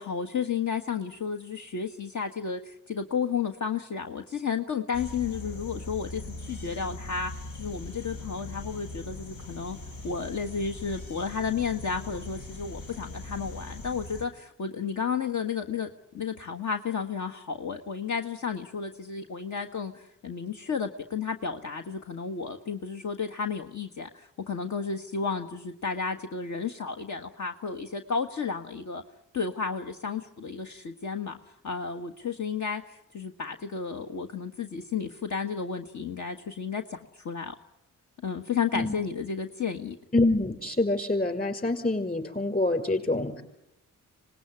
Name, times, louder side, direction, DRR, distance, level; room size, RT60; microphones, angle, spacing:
voice 1, 0.0-9.8 10.0-29.0 29.3-31.4 31.6-37.5 38.2-40.0, left 6 dB, 60° left, 5 dB, 1.5 m, -32 dB
sound 1, 4.9-14.2, left 2 dB, 85° left, 3.9 m, -41 dB
voice 2, 40.1-43.4, left 2 dB, 25° left, 8 dB, 6.0 m, -26 dB
25.5 x 19.5 x 9.7 m, 0.86 s
cardioid pair, 75°, 33 cm